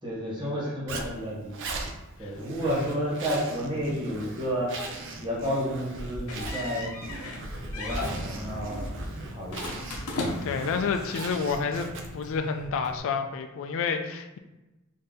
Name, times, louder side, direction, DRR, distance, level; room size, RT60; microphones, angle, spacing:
voice 1, 0.0-1.6 2.2-4.8 5.2-6.9 7.8-9.8, equal, 20° right, -6 dB, 1.4 m, -31 dB
Zipper (clothing), 0.9-12.3, right 3 dB, 60° right, 0.5 m, -40 dB
Zipper (clothing) 2, 5.7-13.0, equal, ahead, 1.2 m, -40 dB
sound 1, 6.3-7.4 7.7-8.1 9.5-10.7, left 2 dB, 85° left, 0.7 m, -35 dB
voice 2, 10.4-14.4, left 5 dB, 65° left, 6 dB, 0.4 m, -29 dB
3.9 x 2.7 x 3.7 m, 1.0 s
head